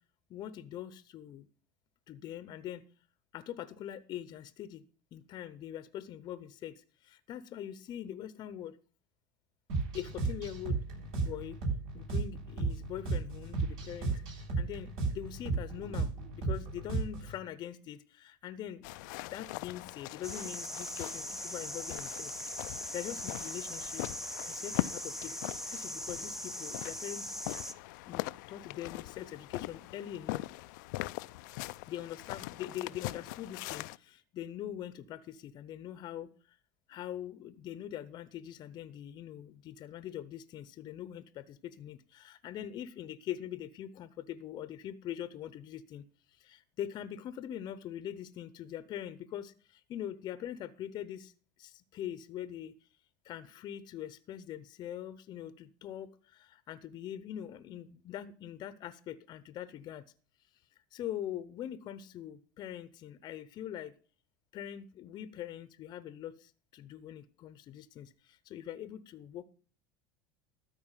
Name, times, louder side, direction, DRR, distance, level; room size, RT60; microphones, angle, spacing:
voice 1, 0.3-1.5 2.1-2.8 3.3-4.8 5.1-8.8 9.9-11.6 11.9-18.9 19.2-22.3 22.6-24.1 24.5-27.3 28.1-30.5 31.9-36.6 36.9-46.0 46.3-51.3 51.6-52.9 53.2-60.0 60.9-63.9 64.5-69.4, left 11 dB, 45° left, 15 dB, 0.7 m, -43 dB
sound 1, 9.7-17.4, right 4 dB, 60° right, 7.3 m, -35 dB
sound 2, 18.8-34.0, left 20 dB, 75° left, 0.4 m, -41 dB
sound 3, 20.2-27.7, equal, 5° right, 0.7 m, -41 dB
13.0 x 4.7 x 7.3 m, 0.40 s
supercardioid pair, 110°, 10 cm